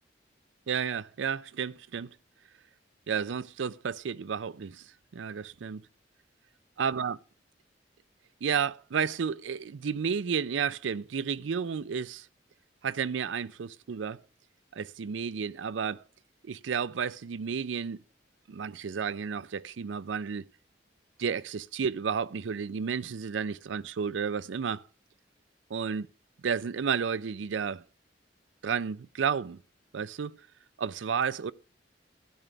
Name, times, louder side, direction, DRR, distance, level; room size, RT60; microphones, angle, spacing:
voice 1, 0.7-2.1 3.1-4.8 5.1-5.9 6.8-7.2 8.4-12.3 12.8-14.2 14.7-16.0 16.4-18.0 18.5-20.5 21.2-24.8 25.7-26.1 26.4-27.8 28.6-29.6 29.9-30.4 30.8-31.5, right 6 dB, 80° right, 0.5 m, -32 dB
12.5 x 10.0 x 3.4 m
head